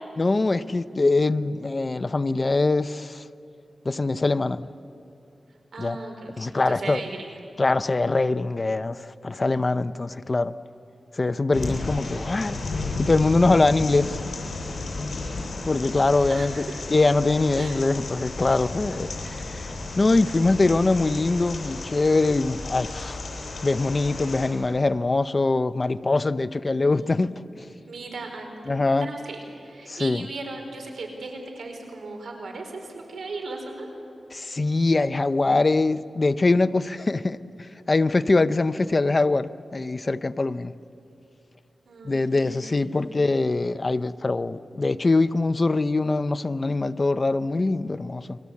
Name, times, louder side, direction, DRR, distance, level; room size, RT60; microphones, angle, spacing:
voice 1, 0.2-3.2 3.8-4.6 5.8-6.0 6.4-7.0 7.6-10.5 11.1-14.2 15.6-19.7 20.0-23.2 23.6-27.6 28.7-29.1 29.9-30.3 34.3-37.4 37.9-40.7 42.0-48.4, left 3 dB, 35° left, 0.7 m, -23 dB
voice 2, 5.7-7.4 16.3-16.8 17.5-17.8 26.8-27.2 27.9-33.9 41.8-43.2, right 3 dB, 85° right, 4.7 m, -37 dB
sound 1, 11.5-24.5, left 3 dB, 70° left, 8.0 m, -33 dB
30.0 x 22.5 x 8.5 m
wide cardioid pair, 90°, 0 cm